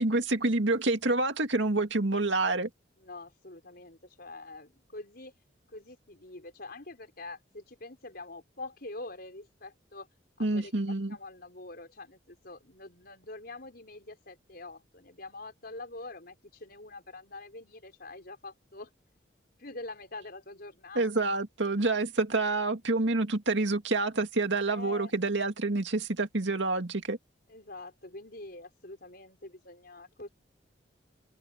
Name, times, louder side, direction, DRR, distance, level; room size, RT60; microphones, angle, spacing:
voice 1, 0.0-2.7 10.4-11.2 21.0-27.2, right 2 dB, 75° right, 2.3 m, -28 dB
voice 2, 3.0-5.3 5.7-10.1 10.4-10.8 11.1-18.9 19.6-21.3 24.7-25.1 27.5-30.3, left 2 dB, 55° left, 5.2 m, -45 dB
head